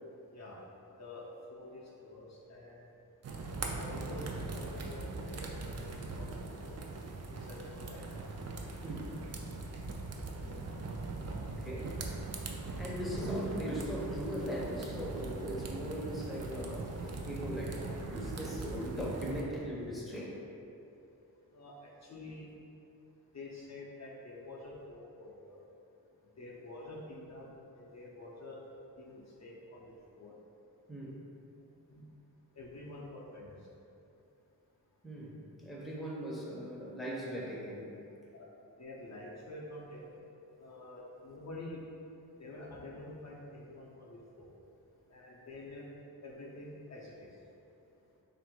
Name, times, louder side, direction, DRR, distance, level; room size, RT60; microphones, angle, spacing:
voice 1, 1.0-2.9 3.8-5.5 6.2-6.3 6.6-6.8 7.4-8.1 10.4-10.6 21.5-21.7 22.1-22.5 23.3-25.6 26.4-28.6 29.0-30.3 31.9-32.0 32.5-33.6 38.3-38.5 38.8-40.1 40.6-41.8 42.4-44.5 45.1-45.9 46.2-47.3, left 2 dB, 45° left, -4 dB, 0.5 m, -48 dB
sound 1, 3.2-19.4, right 3 dB, 45° right, 0.4 m, -40 dB
voice 2, 8.8-9.1 11.5-12.0 12.8-20.4 30.9-31.2 35.0-37.9, equal, ahead, -5 dB, 0.6 m, -39 dB
3.4 x 2.5 x 4.5 m, 2.8 s
wide cardioid pair, 135°, 37 cm